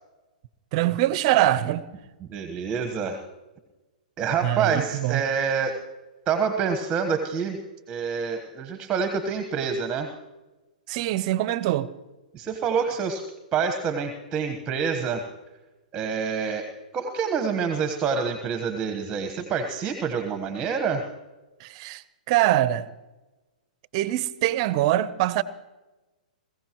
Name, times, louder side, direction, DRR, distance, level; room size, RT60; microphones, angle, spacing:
voice 1, 0.7-1.8 4.4-5.2 10.9-11.9 21.6-22.9 23.9-25.4, right 14 dB, 45° right, 0.8 m, -23 dB
voice 2, 2.2-3.2 4.2-5.8 6.3-7.6 7.9-10.1 12.3-13.2 13.5-15.2 15.9-21.0, right 6 dB, 20° right, 1.3 m, -27 dB
21.0 x 16.0 x 3.1 m
hypercardioid pair, 125°, 4 cm